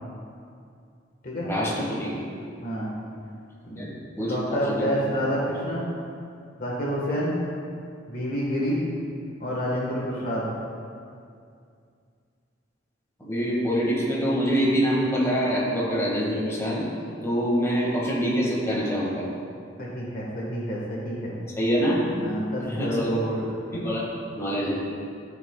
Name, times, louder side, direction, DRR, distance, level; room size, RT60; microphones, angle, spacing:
voice 1, 1.4-2.1 3.8-3.9 4.2-4.9 13.2-16.9 17.2-19.2 21.6-22.1 22.6-23.2 23.7-24.1 24.3-24.7, equal, 15° left, -6 dB, 1.7 m, -25 dB
voice 2, 2.6-2.9 3.6-5.9 6.6-7.4 8.1-8.8 9.4-10.4 19.8-21.4 22.2-23.5, equal, 50° left, -4 dB, 1.4 m, -28 dB
13.5 x 5.9 x 2.3 m, 2.3 s
head